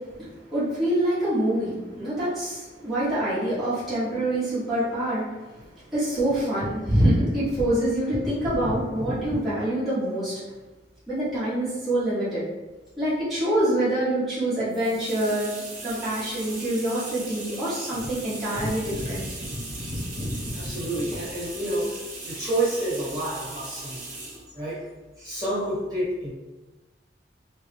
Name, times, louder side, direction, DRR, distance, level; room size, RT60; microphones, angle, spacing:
voice 1, 0.2-5.2 5.5-5.6 5.9-10.4 11.1-12.4 13.0-15.5 15.8-19.3, right 1 dB, ahead, -14 dB, 1.4 m, -25 dB
voice 2, 6.6-7.0 8.6-9.4 18.0-18.1 18.5-21.8 22.2-24.0 24.5-24.8 25.2-26.3, right 1 dB, 20° right, -11 dB, 1.4 m, -30 dB
sound 1, 14.7-24.5, right 2 dB, 45° right, 1.1 m, -38 dB
3.1 x 2.7 x 3.5 m, 1.1 s
head